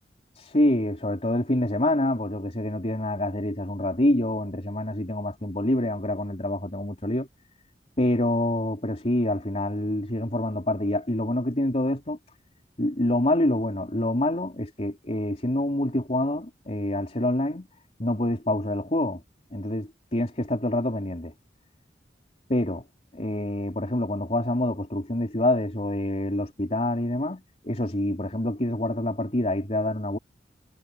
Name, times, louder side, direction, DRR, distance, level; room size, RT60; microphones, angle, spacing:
voice 1, 0.4-7.3 8.0-12.2 12.8-17.7 18.0-19.2 19.5-21.3 22.5-22.8 23.1-30.2, left 1 dB, 40° left, 3.7 m, -26 dB
head